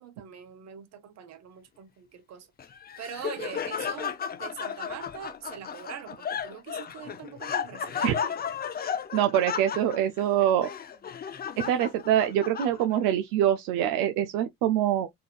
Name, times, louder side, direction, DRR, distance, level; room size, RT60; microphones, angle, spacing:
voice 1, 0.0-2.5 3.0-8.4, right 9 dB, 55° right, 1.0 m, -43 dB
Laughter, 2.6-13.1, left 7 dB, 30° left, 0.6 m, -34 dB
voice 2, 9.1-10.7 11.6-15.1, right 11 dB, 80° right, 0.5 m, -24 dB
4.0 x 2.5 x 2.3 m
supercardioid pair, 85°, 31 cm